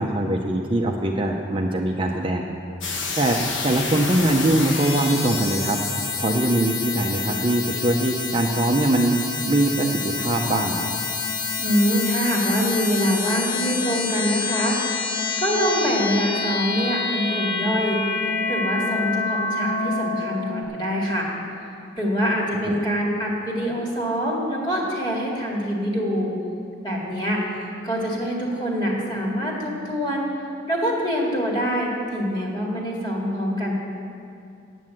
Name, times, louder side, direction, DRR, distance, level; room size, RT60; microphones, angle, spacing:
voice 1, 0.0-2.5 3.2-5.8 6.2-9.1 9.5-10.9 22.6-22.7, right 1 dB, 25° right, 1 dB, 0.6 m, -22 dB
sound 1, 2.8-20.6, left 4 dB, 85° left, 1.2 m, -27 dB
voice 2, 11.6-14.8 15.4-18.0 18.5-21.3 22.0-26.3 26.8-27.4 27.8-30.3 30.7-33.7, equal, 25° left, -3 dB, 2.1 m, -24 dB
9.2 x 8.5 x 7.7 m, 2.5 s
head